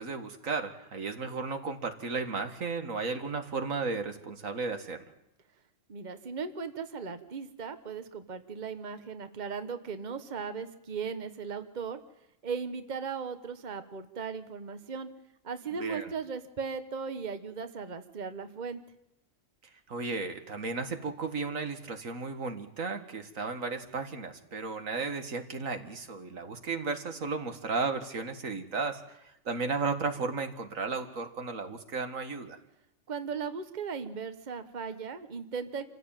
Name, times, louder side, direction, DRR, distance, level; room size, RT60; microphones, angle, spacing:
voice 1, 0.0-5.1 15.8-16.1 19.9-29.2 29.5-32.6, right 4 dB, 85° right, 7 dB, 2.3 m, -34 dB
voice 2, 5.9-12.0 12.4-15.1 15.4-18.8 33.1-35.8, right 5 dB, 35° right, 10 dB, 1.3 m, -37 dB
27.5 x 15.5 x 9.1 m, 0.83 s
omnidirectional pair, 1.3 m